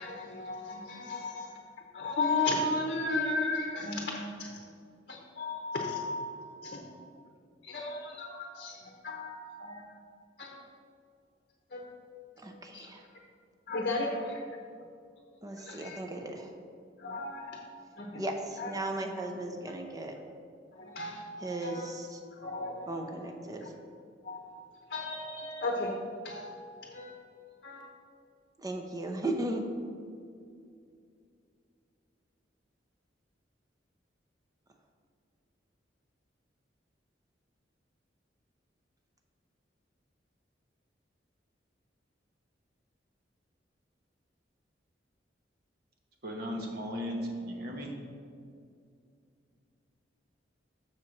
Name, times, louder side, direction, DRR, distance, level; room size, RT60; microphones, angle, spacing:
voice 1, 0.0-1.5 1.9-4.6 5.1-6.9 7.6-10.0 10.4-10.6 11.7-12.0 12.7-12.9 13.7-14.4 15.6-16.0 17.0-17.7 18.0-18.2 18.6-18.7 20.7-21.9 22.3-23.1 23.6-23.7 24.2-24.5 24.9-26.0 26.2-27.2 27.6-27.9, left 2 dB, 50° left, 0 dB, 0.8 m, -35 dB
voice 2, 12.4-13.1 15.4-16.5 18.2-20.1 21.4-22.2 22.9-23.7 28.6-29.7, right 1 dB, 20° right, 4 dB, 0.6 m, -36 dB
voice 3, 46.2-47.9, equal, 55° right, 1 dB, 1.1 m, -36 dB
6.4 x 4.4 x 6.3 m, 2.3 s
head